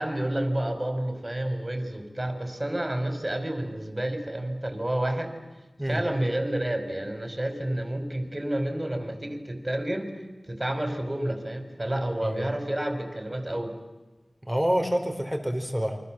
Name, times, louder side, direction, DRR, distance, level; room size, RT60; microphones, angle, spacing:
voice 1, 0.0-5.3 5.8-10.1 10.5-13.7, right 1 dB, 25° right, 7 dB, 5.0 m, -30 dB
voice 2, 14.4-16.0, equal, 5° right, 5 dB, 4.4 m, -27 dB
29.0 x 24.5 x 7.7 m, 1.1 s
wide cardioid pair, 65°, 0 cm